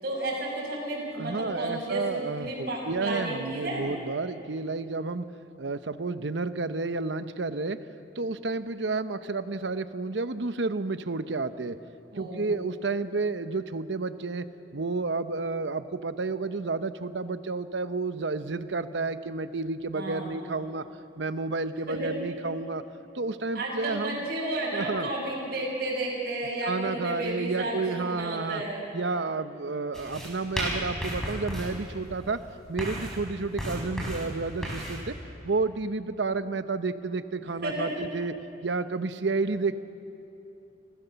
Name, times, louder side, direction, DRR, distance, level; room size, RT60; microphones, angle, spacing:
voice 1, 0.0-3.8 12.1-12.5 19.9-20.4 21.9-22.1 23.5-28.8 37.6-37.9, right 1 dB, 55° right, -4 dB, 7.0 m, -32 dB
voice 2, 1.2-5.3 5.6-7.8 8.2-11.8 12.2-20.8 21.2-22.8 23.1-24.2 24.7-25.1 26.6-28.6 28.9-32.4 32.7-35.2 35.4-38.3 38.6-39.8, right 3 dB, 75° right, 12 dB, 0.8 m, -31 dB
sound 1, 29.9-35.0, equal, 5° left, 5.2 m, -34 dB
30.0 x 15.0 x 6.9 m, 2.8 s
head